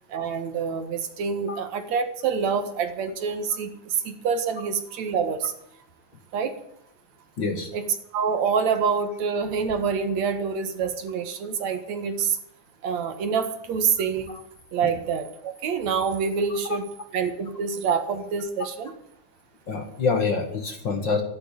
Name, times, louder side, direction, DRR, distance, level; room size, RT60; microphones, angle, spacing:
voice 1, 0.1-5.5 6.3-6.6 7.7-7.8 8.1-12.4 12.8-14.4 14.7-16.8 17.1-18.9, right 6 dB, 70° right, 8 dB, 2.7 m, -26 dB
voice 2, 7.4-7.7 14.8-14.9 16.7-16.8 19.7-21.2, left 4 dB, 45° left, 6 dB, 2.0 m, -26 dB
13.5 x 11.0 x 8.7 m, 0.74 s
omnidirectional pair, 3.4 m